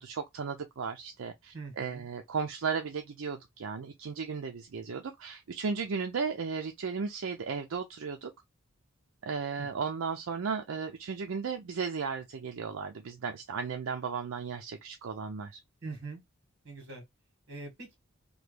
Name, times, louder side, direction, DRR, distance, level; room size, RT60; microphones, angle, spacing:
voice 1, 0.0-8.3 9.2-15.6, right 5 dB, 75° right, 0.5 m, -35 dB
voice 2, 1.5-2.1 9.6-9.7 15.8-16.2 16.6-17.0 17.5-18.0, right 3 dB, 55° right, 1.7 m, -42 dB
3.0 x 2.2 x 3.2 m
head